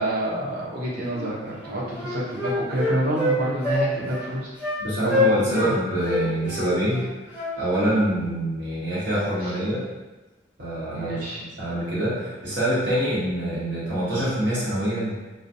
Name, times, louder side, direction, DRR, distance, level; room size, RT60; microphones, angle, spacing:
voice 1, 0.0-4.5 5.0-5.7 10.9-11.4, right 1 dB, 55° right, -6 dB, 0.8 m, -28 dB
Wind instrument woodwind instrument, 1.1-1.3 1.6-3.4 3.6-3.8 4.1-4.3 4.6-4.8 5.1-5.7 6.0-7.9, left 2 dB, 10° right, 0.7 m, -26 dB
voice 2, 4.8-9.8 10.6-11.2 11.6-15.2, right 1 dB, 70° right, -9 dB, 1.2 m, -25 dB
2.3 x 2.3 x 2.6 m, 1.2 s
head